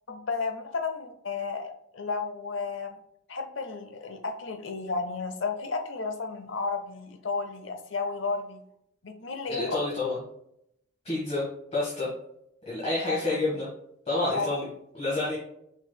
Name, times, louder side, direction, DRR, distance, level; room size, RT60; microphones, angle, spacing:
voice 1, 0.1-3.0 3.3-8.6 9.0-9.8 13.0-13.4 14.3-14.6, left 4 dB, 75° left, 6 dB, 0.7 m, -33 dB
voice 2, 9.5-10.2 11.0-11.4 11.7-12.1 12.6-13.7 14.1-14.7 14.9-15.4, left 2 dB, 35° left, -7 dB, 1.4 m, -28 dB
5.9 x 3.9 x 2.2 m, 0.77 s
head